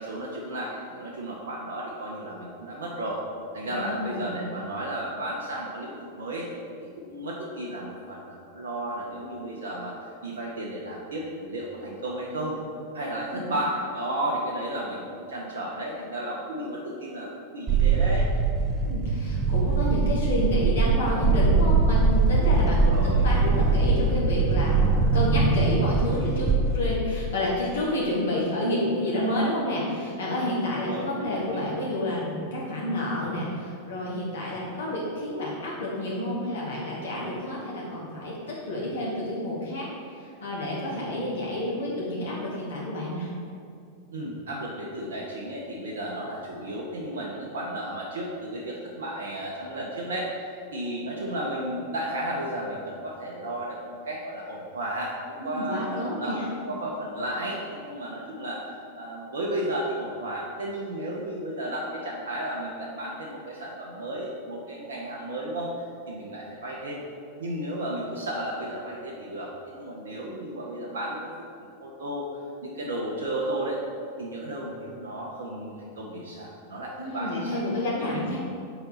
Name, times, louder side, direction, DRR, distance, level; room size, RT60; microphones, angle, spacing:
voice 1, 0.0-3.2 3.5-6.5 6.8-9.9 10.2-12.6 12.9-18.3 22.6-23.3 30.5-31.7 44.1-58.6 58.9-65.7 66.1-67.0 67.4-71.3 71.6-72.2 72.6-73.8 74.2-77.6 78.0-78.4, right 1 dB, 65° right, -3 dB, 0.7 m, -33 dB
voice 2, 3.7-4.4 13.0-13.6 18.8-43.3 55.4-56.4 77.0-78.4, left 1 dB, 65° left, -6 dB, 1.1 m, -29 dB
sound 1, 17.7-27.0, right 4 dB, 25° right, 0.4 m, -22 dB
4.4 x 3.9 x 5.6 m, 2.5 s
figure-of-eight pair, 90°, 0 cm